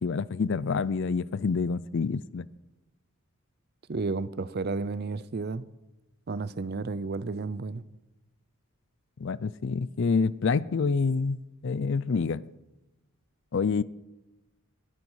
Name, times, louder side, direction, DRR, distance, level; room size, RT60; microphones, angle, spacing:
voice 1, 0.0-2.5 9.2-12.4 13.5-13.8, left 4 dB, 55° left, 0.4 m, -27 dB
voice 2, 3.9-5.6 6.3-7.8, right 3 dB, 45° right, 0.5 m, -32 dB
20.5 x 9.5 x 4.8 m
head